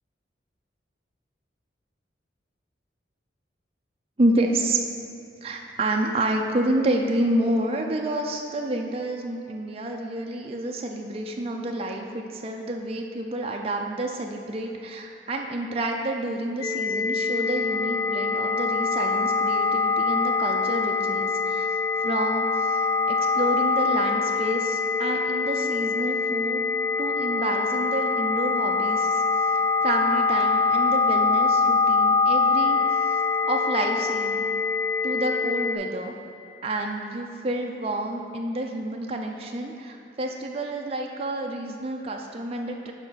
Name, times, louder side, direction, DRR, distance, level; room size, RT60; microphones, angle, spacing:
voice 1, 4.2-4.8 5.4-21.7 22.0-22.8 23.1-26.7 27.0-29.2 29.8-32.8 33.5-34.5 35.0-36.1 36.6-42.9, right 1 dB, 30° right, 1 dB, 0.5 m, -29 dB
sound 1, 16.6-35.8, left 4 dB, 20° left, 0.5 m, -24 dB
7.0 x 5.2 x 5.7 m, 2.5 s
head